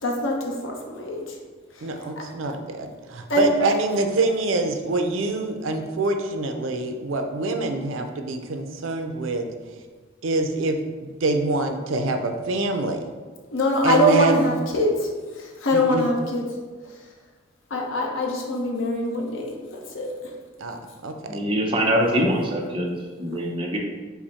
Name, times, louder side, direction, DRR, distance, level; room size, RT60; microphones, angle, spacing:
voice 1, 0.0-1.4 1.7-1.9 2.2-2.3 3.3-3.5 13.5-15.1 15.3-16.5 17.7-20.3 22.0-22.2, left 1 dB, 80° left, 1 dB, 0.8 m, -24 dB
voice 2, 1.8-9.5 10.2-13.0 13.8-14.5 15.7-16.1 20.6-21.4, right 2 dB, 90° right, 6 dB, 0.5 m, -25 dB
voice 3, 21.3-23.8, equal, 25° right, 0 dB, 0.6 m, -24 dB
5.7 x 2.1 x 4.1 m, 1.4 s
head